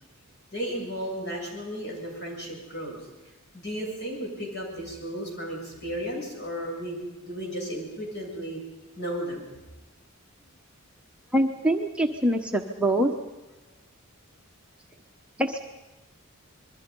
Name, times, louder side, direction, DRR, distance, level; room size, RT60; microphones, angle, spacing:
voice 1, 0.5-3.0 3.5-8.6 9.0-9.4, equal, 50° left, -1 dB, 7.6 m, -34 dB
voice 2, 11.3-13.2 15.4-15.7, right 1 dB, 5° right, 2 dB, 1.0 m, -24 dB
26.5 x 22.0 x 5.4 m, 1.1 s
head